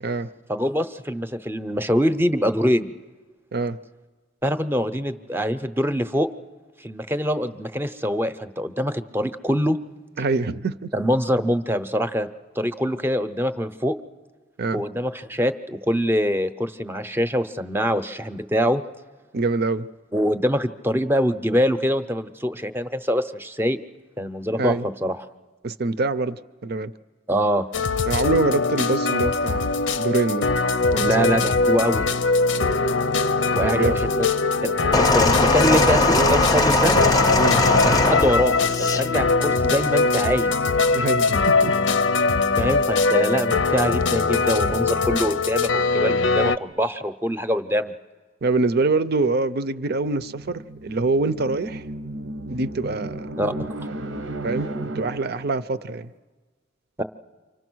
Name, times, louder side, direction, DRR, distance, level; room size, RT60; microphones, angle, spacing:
voice 1, 0.5-2.9 4.4-6.3 6.8-9.8 10.9-12.3 12.6-13.9 14.7-18.8 20.1-23.8 24.2-25.2 27.3-27.7 31.0-32.1 33.5-34.2 34.6-37.0 37.8-40.5 42.6-47.9 53.4-53.5 57.0-57.1, equal, 10° right, 0.7 m, -24 dB
voice 2, 10.2-10.9 14.6-14.8 19.3-19.9 24.6-24.9 25.6-26.9 28.1-30.5 30.9-31.2 33.6-34.0 37.4-37.9 40.9-41.8 48.4-51.8 52.5-53.3 54.4-54.7 54.9-56.1, right 3 dB, 55° right, 0.7 m, -25 dB
sound 1, 27.7-46.6, left 4 dB, 90° left, 0.8 m, -21 dB
sound 2, 34.9-39.1 39.9-40.1, left 2 dB, 20° left, 0.7 m, -20 dB
sound 3, 50.0-55.6, right 1 dB, 85° right, 1.1 m, -34 dB
29.0 x 25.0 x 6.3 m
head